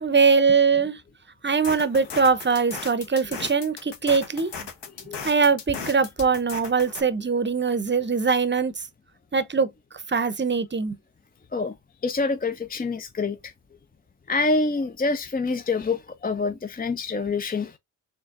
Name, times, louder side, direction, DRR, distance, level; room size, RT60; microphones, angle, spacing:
voice 1, 0.0-1.0 1.4-4.5 5.2-8.7 9.3-9.7 10.1-11.0, right 5 dB, 25° right, 0.7 m, -22 dB
sound 1, 1.5-7.0, left 5 dB, 65° left, 1.2 m, -37 dB
voice 2, 12.0-13.5 14.3-17.7, left 3 dB, 20° left, 0.4 m, -26 dB
4.3 x 3.1 x 2.4 m
cardioid pair, 50°, 45 cm